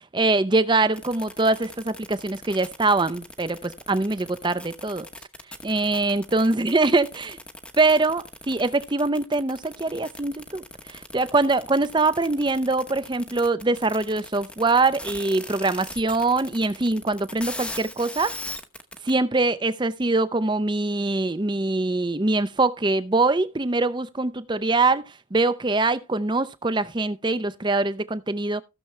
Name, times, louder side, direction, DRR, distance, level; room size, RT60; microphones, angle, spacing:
voice 1, 0.0-5.1 5.6-7.4 7.8-18.3 19.0-28.6, right 3 dB, 20° right, 0.6 m, -23 dB
sound 1, 0.9-19.1, left 2 dB, 5° left, 0.9 m, -39 dB
15.5 x 7.0 x 3.2 m
head